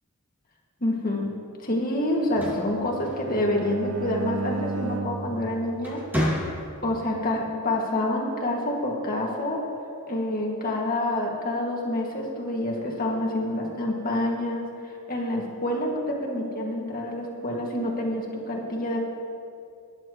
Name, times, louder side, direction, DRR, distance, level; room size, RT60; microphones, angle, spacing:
voice 1, 0.8-1.3 1.6-6.0 6.8-9.6 10.1-19.0, left 1 dB, 45° left, -1 dB, 2.1 m, -27 dB
sound 1, 2.1-3.7 5.1-5.4 5.8-7.0, equal, 10° right, 2.3 m, -30 dB
Bowed string instrument, 2.5-6.6, right 3 dB, 80° right, 0.7 m, -35 dB
20.0 x 10.0 x 3.1 m, 2.5 s
head